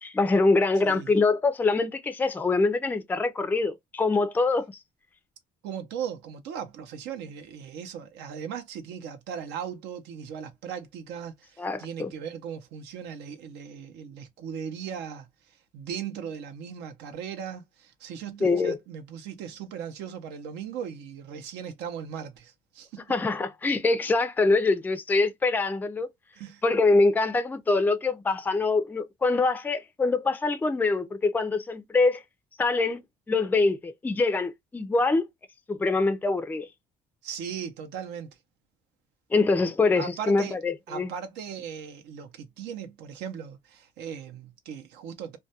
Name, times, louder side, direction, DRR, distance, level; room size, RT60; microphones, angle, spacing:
voice 1, 0.0-4.7 11.6-12.1 18.4-18.8 23.1-26.1 26.6-32.2 32.6-33.0 33.3-35.3 35.7-36.7 39.3-41.1, left 3 dB, 10° left, 0.3 m, -24 dB
voice 2, 5.6-15.3 15.7-23.1 26.3-26.6 37.2-38.3 40.0-40.6 40.9-45.4, right 8 dB, 85° right, 0.6 m, -38 dB
2.3 x 2.2 x 2.6 m
cardioid pair, 110°, 17 cm